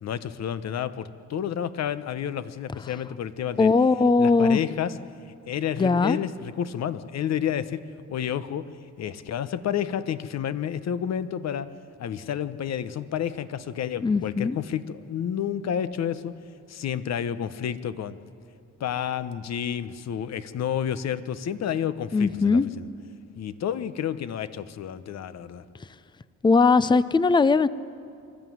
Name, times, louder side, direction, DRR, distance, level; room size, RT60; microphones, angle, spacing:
voice 1, 0.0-3.7 4.2-5.0 5.5-8.7 9.0-11.7 12.0-16.4 16.7-18.2 18.8-22.8 23.4-25.7, left 9 dB, 60° left, 13 dB, 1.0 m, -30 dB
voice 2, 3.6-4.6 5.8-6.2 14.0-14.6 22.1-22.7 26.4-27.7, left 4 dB, 15° left, 16 dB, 0.5 m, -20 dB
24.5 x 13.0 x 9.4 m, 2.5 s
cardioid pair, 90°, 30 cm